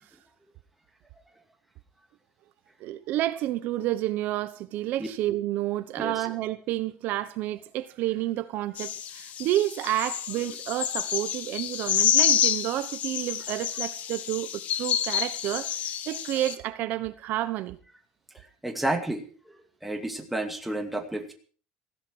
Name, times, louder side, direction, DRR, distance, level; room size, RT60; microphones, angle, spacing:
voice 1, 2.8-17.8, right 14 dB, 55° right, 1.1 m, -30 dB
sound 1, 8.8-16.5, left 9 dB, 40° left, 1.3 m, -28 dB
voice 2, 18.3-21.3, right 1 dB, 5° right, 2.4 m, -32 dB
17.0 x 16.5 x 4.7 m
cardioid pair, 165°, 4 cm